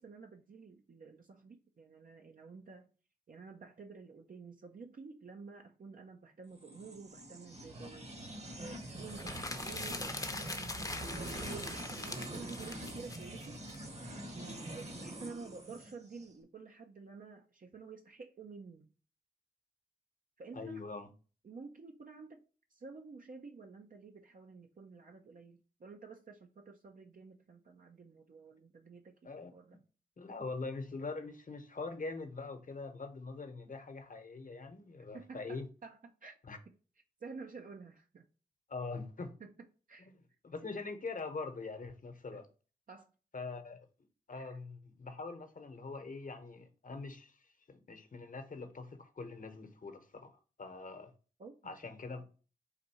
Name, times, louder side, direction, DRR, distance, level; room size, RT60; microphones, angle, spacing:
voice 1, 0.0-2.9 3.3-8.2 8.6-13.6 14.3-18.9 20.4-20.8 21.4-29.8 35.1-36.4 37.2-38.3 39.4-39.5 39.9-40.1 42.3-42.4 42.9-43.1 44.3-44.6 51.4-51.8, right 4 dB, 60° right, 0.6 m, -51 dB
sound 1, 6.6-16.3, right 1 dB, 45° right, 1.1 m, -45 dB
sound 2, 9.1-13.8, left 2 dB, 20° left, 0.7 m, -42 dB
voice 2, 20.5-21.1 29.2-29.8 30.2-35.7 36.4-36.6 38.7-39.3 40.0-40.1 40.4-42.5 43.3-43.9 44.3-47.4 47.7-51.1 51.6-52.2, left 3 dB, 55° left, 0.9 m, -43 dB
4.2 x 2.6 x 4.2 m
cardioid pair, 40°, 16 cm